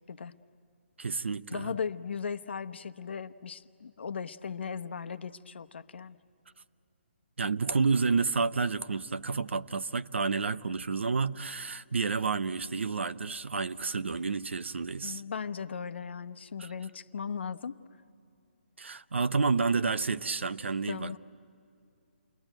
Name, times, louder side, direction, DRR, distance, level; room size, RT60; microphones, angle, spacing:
voice 1, 1.0-1.7 7.4-15.2 16.6-16.7 18.8-21.1, right 4 dB, 85° right, 0.8 m, -30 dB
voice 2, 1.5-6.2 15.0-17.8 20.8-21.2, left 6 dB, 70° left, 0.9 m, -37 dB
29.5 x 21.5 x 9.1 m
hypercardioid pair, 155°, 6 cm